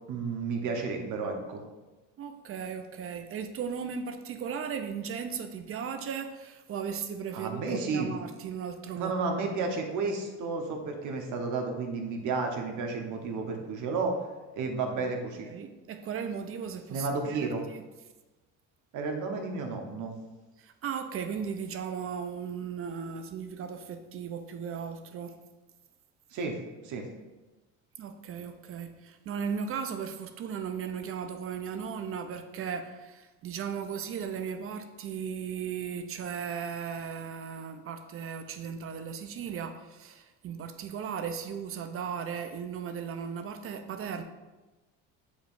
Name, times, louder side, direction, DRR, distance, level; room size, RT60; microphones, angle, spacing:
voice 1, 0.1-1.6 7.3-8.1 9.0-14.2 14.5-15.5 16.9-17.6 18.9-20.1 26.3-26.6 26.8-27.1, right 4 dB, 60° right, 2 dB, 1.2 m, -32 dB
voice 2, 2.2-9.1 15.4-17.8 20.6-25.4 28.0-44.2, right 7 dB, 40° right, 7 dB, 0.6 m, -36 dB
7.0 x 5.1 x 2.6 m, 1.1 s
supercardioid pair, 105°, 35 cm